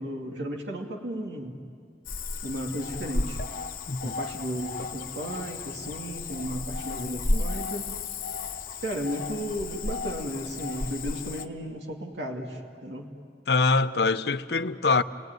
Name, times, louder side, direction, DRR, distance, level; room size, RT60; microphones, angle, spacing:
voice 1, 0.0-1.6 2.4-3.4 4.0-7.9 8.8-13.1, equal, 85° right, 2.5 m, -34 dB
Cricket / Frog, 2.1-11.5, left 3 dB, 50° left, 1.1 m, -33 dB
voice 2, 13.5-15.0, left 4 dB, 65° left, 0.7 m, -24 dB
29.5 x 20.0 x 9.4 m
head